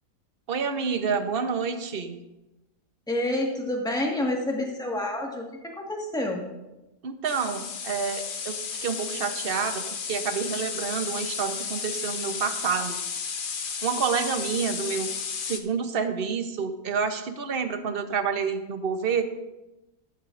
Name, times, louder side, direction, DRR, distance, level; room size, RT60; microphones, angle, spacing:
voice 1, 0.5-2.2 7.0-8.5 8.8-13.0 13.8-19.2, right 6 dB, 45° right, 7 dB, 1.0 m, -28 dB
voice 2, 3.1-6.4, left 1 dB, 5° left, 0 dB, 1.5 m, -28 dB
sound 1, 7.2-15.6, left 6 dB, 45° left, 0.7 m, -33 dB
14.0 x 12.0 x 2.5 m, 1.0 s
omnidirectional pair, 1.5 m